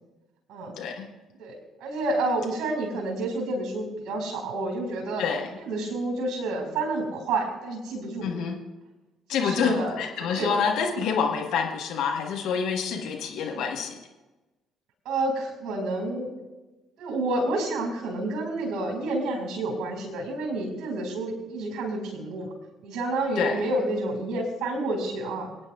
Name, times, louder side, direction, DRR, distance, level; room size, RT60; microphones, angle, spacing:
voice 1, 0.8-1.1 5.2-5.5 8.2-8.6 9.3-13.9 23.3-23.6, left 6 dB, 60° left, 2 dB, 1.4 m, -27 dB
voice 2, 1.4-5.2 5.5-8.3 9.3-10.0 10.3-10.5 13.5-13.7 15.0-16.3 17.0-22.5 22.8-25.5, right 2 dB, 50° right, 3 dB, 4.5 m, -29 dB
26.0 x 9.6 x 2.4 m, 1.1 s
figure-of-eight pair, 45°, 0 cm